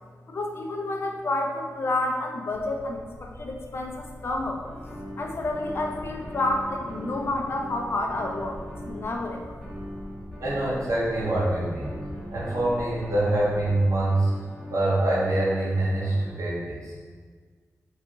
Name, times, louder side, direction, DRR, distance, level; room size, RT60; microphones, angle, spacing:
voice 1, 0.3-8.6 8.9-9.5, left 2 dB, 45° left, 2 dB, 0.4 m, -30 dB
sound 1, 2.5-14.1, left 1 dB, 70° left, 0.8 m, -45 dB
sound 2, 4.6-16.3, equal, ahead, 0.7 m, -40 dB
voice 2, 10.4-11.9 12.3-14.3 14.7-17.1, right 1 dB, 65° right, -7 dB, 0.7 m, -25 dB
2.8 x 2.3 x 3.5 m, 1.5 s
wide cardioid pair, 130°, 6 cm